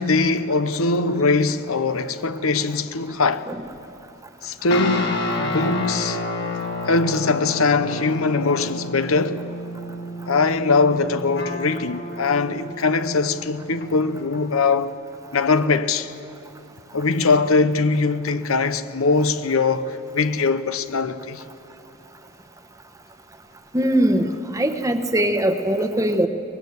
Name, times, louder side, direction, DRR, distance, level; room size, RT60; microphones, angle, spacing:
voice 1, 0.0-3.5 4.4-6.2 6.9-9.4 10.3-14.9 15.3-16.1 16.9-21.4, left 4 dB, 85° left, 0.8 m, -21 dB
sound 1, 4.7-14.4, left 2 dB, 55° left, 2.1 m, -30 dB
voice 2, 23.7-26.3, right 1 dB, 15° right, 1.0 m, -21 dB
23.5 x 20.0 x 8.1 m
head